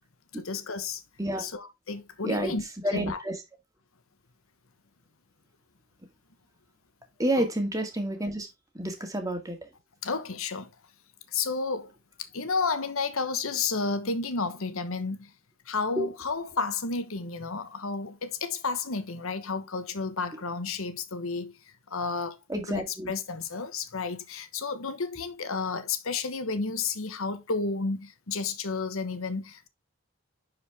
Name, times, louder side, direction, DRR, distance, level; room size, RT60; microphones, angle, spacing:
voice 1, 0.3-1.0 1.4-2.6 2.9-3.2 7.4-7.5 10.0-10.7 11.3-11.9 12.2-15.3 15.7-21.5 21.9-29.7, left 4 dB, 75° left, 1.2 m, -31 dB
voice 2, 2.8-3.3 7.2-8.5 8.7-9.6 16.0-16.1 22.5-23.1, right 1 dB, 15° right, 2.1 m, -29 dB
11.0 x 4.8 x 3.5 m
head